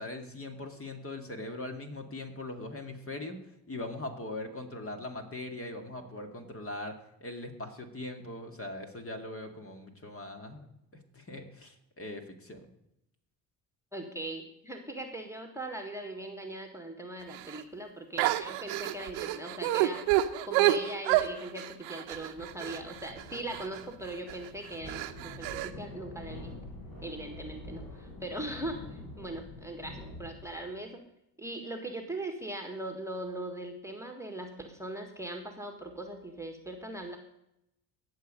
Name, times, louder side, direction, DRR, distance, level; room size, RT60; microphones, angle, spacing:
voice 1, 0.0-3.4 3.7-10.7 10.9-12.7, left 2 dB, 25° left, 5 dB, 2.1 m, -41 dB
voice 2, 13.9-20.0 20.4-26.5 27.0-31.0 31.4-37.2, right 1 dB, 5° right, 3 dB, 1.7 m, -40 dB
sound 1, 17.3-17.6 18.2-23.8 24.3-24.5 24.9-25.7, right 15 dB, 65° right, 1.0 m, -29 dB
sound 2, 22.3-30.7, left 2 dB, 45° left, 4.6 m, -46 dB
17.0 x 6.6 x 5.3 m, 0.81 s
hypercardioid pair, 55°, 49 cm